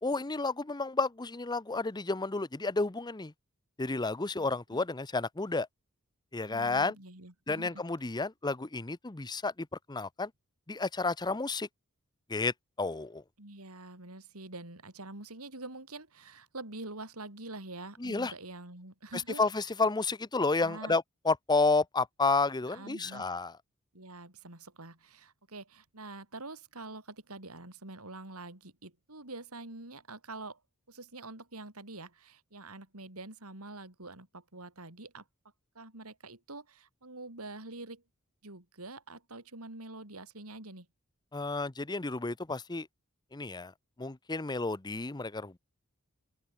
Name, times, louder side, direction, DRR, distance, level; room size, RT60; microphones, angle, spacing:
voice 1, 0.0-3.3 3.8-5.7 6.3-6.9 7.5-9.5 9.9-10.3 10.7-11.7 12.3-13.2 18.0-18.3 19.4-23.5 41.3-42.9 43.3-43.7 44.0-45.6, left 3 dB, 20° left, 0.7 m, -31 dB
voice 2, 4.3-4.8 6.4-7.8 13.4-19.4 20.6-21.0 22.7-23.3 23.9-30.6 30.9-35.2 35.7-38.0 38.4-40.9, right 2 dB, 80° right, 4.9 m, -46 dB
head